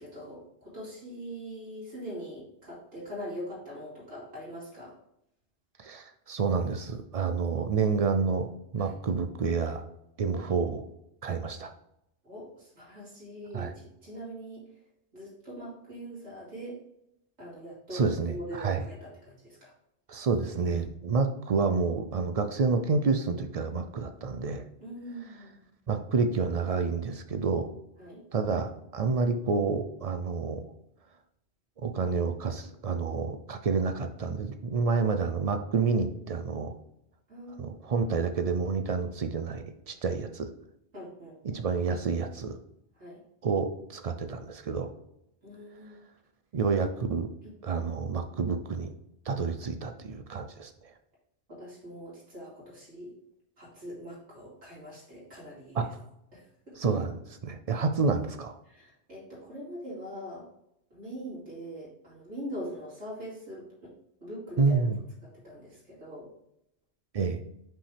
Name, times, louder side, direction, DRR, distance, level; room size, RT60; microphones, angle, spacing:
voice 1, 0.0-5.0 8.8-8.9 10.3-10.4 12.2-14.7 15.1-16.8 17.4-19.7 24.8-25.5 28.0-28.3 37.3-37.8 40.9-41.6 43.0-43.2 45.4-46.0 51.5-53.2 53.6-55.9 56.3-57.0 58.6-60.5 60.9-63.9 64.2-64.9 65.2-66.3, equal, 90° right, -7 dB, 2.7 m, -42 dB
voice 2, 5.8-8.5 8.7-9.8 10.2-10.8 11.2-11.7 13.5-13.7 17.9-18.8 20.1-24.7 25.9-27.7 28.3-30.6 31.8-36.7 37.6-40.5 41.4-42.6 43.4-44.9 46.5-47.3 47.6-48.9 49.3-50.7 55.8-55.9 56.8-57.1 57.4-58.6 64.6-65.0 67.1-67.4, right 4 dB, 50° right, 7 dB, 0.4 m, -29 dB
5.5 x 5.3 x 3.3 m, 0.81 s
omnidirectional pair, 1.2 m